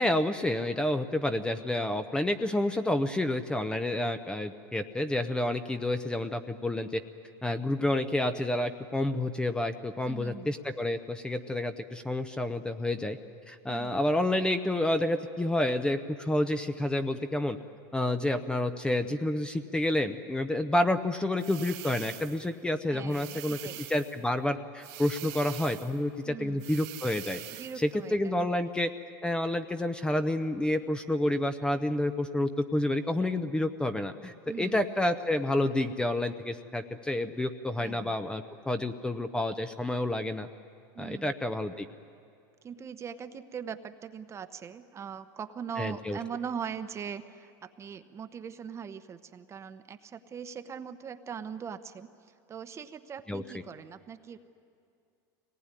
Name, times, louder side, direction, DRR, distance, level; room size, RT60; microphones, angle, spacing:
voice 1, 0.0-7.0 7.4-13.2 13.5-17.6 17.9-23.6 23.9-27.4 27.8-28.9 29.2-40.5 41.0-41.9 45.8-46.2 53.3-53.4, left 1 dB, 10° left, 9 dB, 0.7 m, -29 dB
voice 2, 10.0-10.5 13.7-14.0 22.9-23.8 26.2-26.6 27.6-28.7 34.5-34.9 37.8-38.1 40.9-41.3 42.6-52.1 52.5-54.4, right 7 dB, 25° right, 10 dB, 1.0 m, -41 dB
sound 1, 21.4-22.5 23.1-24.2 24.8-26.0 26.6-27.9, right 15 dB, 60° right, 1.3 m, -44 dB
23.5 x 19.0 x 9.8 m, 2.4 s
supercardioid pair, 125°, 11 cm